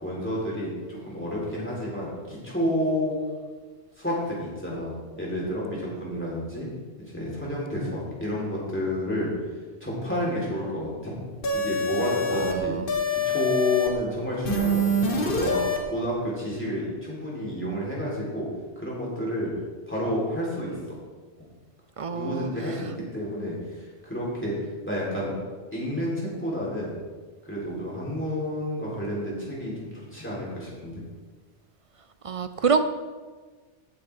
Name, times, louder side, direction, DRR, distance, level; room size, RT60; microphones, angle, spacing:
voice 1, 0.0-3.2 4.0-6.7 7.1-9.3 9.8-11.1 11.5-12.8 13.1-14.9 15.2-18.5 18.8-19.5 19.9-21.0 22.1-24.5 24.8-25.3 25.7-27.0 27.5-31.0, equal, 10° left, -5 dB, 3.7 m, -30 dB
sound 1, 11.4-12.5 12.9-13.9 14.4-15.8, left 1 dB, 50° left, 1.4 m, -25 dB
voice 2, 12.4-12.9 22.0-22.5 32.2-32.8, right 5 dB, 55° right, 10 dB, 0.4 m, -26 dB
14.5 x 8.6 x 3.6 m, 1.4 s
omnidirectional pair, 1.2 m